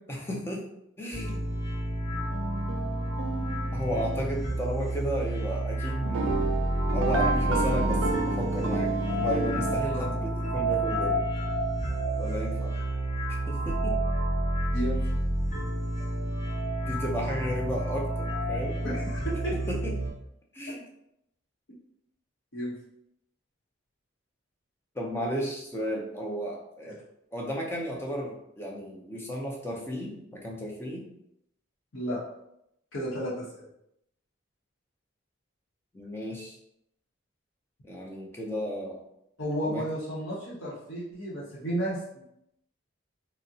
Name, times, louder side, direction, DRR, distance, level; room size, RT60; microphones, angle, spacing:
voice 1, 0.1-0.6 1.0-1.5 3.7-6.4 6.9-11.2 12.2-12.7 13.5-14.0 16.9-18.8 19.5-20.0 20.5-20.9 25.0-27.0 27.3-31.1 35.9-36.6 37.8-39.0 39.6-39.9, equal, 10° left, -1 dB, 0.4 m, -34 dB
sound 1, 1.1-20.1, right 1 dB, 35° left, 0.8 m, -29 dB
sound 2, 2.1-4.5 6.0-9.8, right 3 dB, 80° right, 0.4 m, -31 dB
voice 2, 18.8-19.6 22.5-22.7 31.9-32.2 32.9-33.5 39.4-42.2, equal, 80° left, -7 dB, 0.8 m, -32 dB
3.5 x 2.0 x 2.7 m, 0.79 s
head